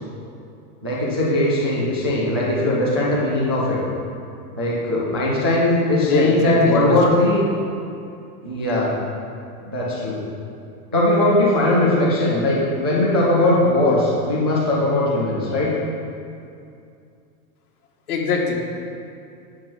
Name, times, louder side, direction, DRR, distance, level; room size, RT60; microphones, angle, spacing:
voice 1, 0.8-3.8 4.6-7.5 8.4-8.9 9.7-10.2 10.9-15.7, left 1 dB, 20° right, -6 dB, 0.3 m, -19 dB
voice 2, 6.1-7.0 18.1-18.5, left 4 dB, 70° left, -1 dB, 2.1 m, -23 dB
10.5 x 6.4 x 5.8 m, 2.5 s
supercardioid pair, 175°, 46 cm